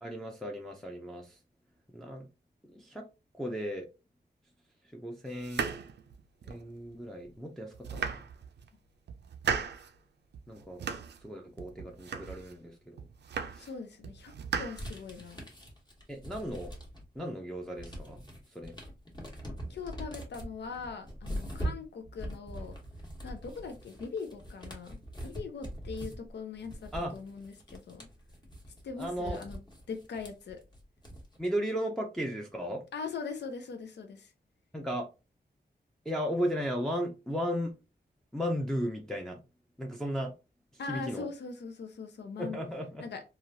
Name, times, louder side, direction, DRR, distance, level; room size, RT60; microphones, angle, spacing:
voice 1, 0.0-1.3 1.9-2.3 2.7-3.1 3.4-3.9 4.9-5.6 6.4-8.2 10.5-10.8 11.2-13.0 13.6-13.7 16.1-16.7 17.2-18.2 18.5-18.7 26.9-27.1 29.0-29.4 31.4-32.8 34.7-35.1 36.1-37.7 38.3-39.4 39.8-40.3 40.9-41.3 42.4-43.0, equal, ahead, 0.5 m, -35 dB
sound 1, 5.4-6.7 7.2-7.3 7.7-8.7 9.1-9.9 10.3-11.3 11.6-12.6 13.0-13.8 14.0-15.3, right 6 dB, 85° right, 0.4 m, -37 dB
voice 2, 13.6-15.5 19.7-22.7 23.2-28.1 28.8-29.6 29.9-30.6 32.9-34.3 40.8-42.6 43.0-43.2, left 5 dB, 90° left, 0.5 m, -41 dB
sound 2, 14.7-17.2 17.5-31.5, equal, 25° left, 1.0 m, -42 dB
3.1 x 2.4 x 2.7 m
wide cardioid pair, 125°, 17 cm